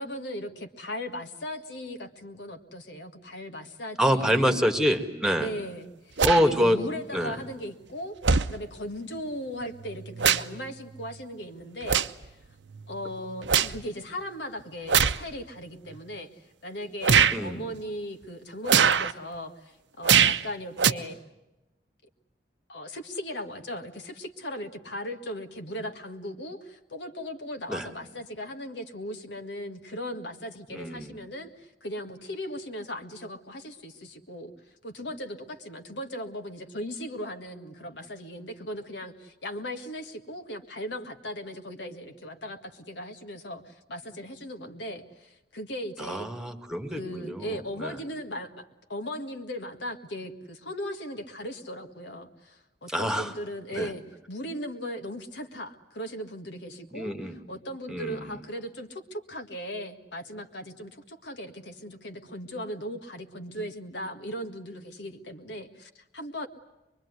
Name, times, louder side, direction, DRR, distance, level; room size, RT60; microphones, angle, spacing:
voice 1, 0.0-4.5 5.4-8.2 8.5-12.1 12.9-16.3 16.6-21.2 22.7-34.5 34.8-46.3 46.9-48.6 48.9-54.0 54.3-57.1 57.5-66.5, equal, 75° left, 6 dB, 1.9 m, -38 dB
voice 2, 4.0-5.5 6.2-6.8 7.1-7.3 17.3-17.7 27.7-27.9 30.7-31.1 46.0-48.0 52.9-53.3 53.8-53.9 56.9-57.4 57.9-58.3, equal, 5° right, 6 dB, 1.8 m, -26 dB
sound 1, 6.2-6.5 7.5-7.6 8.2-8.5 9.7-10.6 11.0-11.2 11.8-12.3 12.7-13.8 14.9-15.2 15.9-16.0 17.0-17.4 18.7-19.1 20.0-20.4 20.8-20.9, right 7 dB, 80° right, 0.8 m, -22 dB
23.5 x 23.5 x 9.7 m, 0.97 s
head